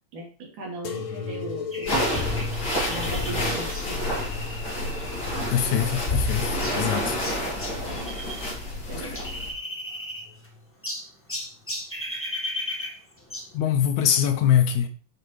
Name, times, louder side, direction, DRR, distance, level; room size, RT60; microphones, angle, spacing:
voice 1, 0.1-1.9 2.9-4.1 8.9-9.3, right 2 dB, 70° right, 4.3 m, -37 dB
sound 1, 0.8-8.1 8.6-9.4 10.1-10.6 11.6-11.7, left 5 dB, 55° left, 1.5 m, -37 dB
sound 2, 1.7-8.5 8.8-10.5 10.8-13.6, left 1 dB, 15° left, 0.4 m, -36 dB
sound 3, 1.9-9.5, left 1 dB, 30° left, 4.0 m, -29 dB
voice 2, 5.5-7.2 9.0-9.1 13.5-14.9, left 9 dB, 70° left, 2.2 m, -23 dB
9.1 x 5.8 x 4.8 m
omnidirectional pair, 3.7 m